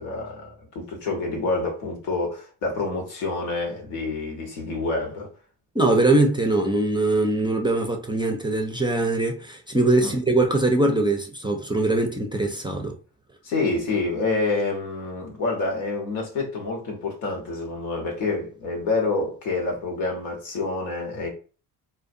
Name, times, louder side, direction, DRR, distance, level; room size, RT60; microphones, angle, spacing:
voice 1, 0.0-5.3 10.0-10.2 13.4-21.3, left 3 dB, 85° left, 1.0 m, -27 dB
voice 2, 5.7-12.9, right 2 dB, 10° right, 0.4 m, -22 dB
2.5 x 2.2 x 2.5 m
hypercardioid pair, 50°, 48 cm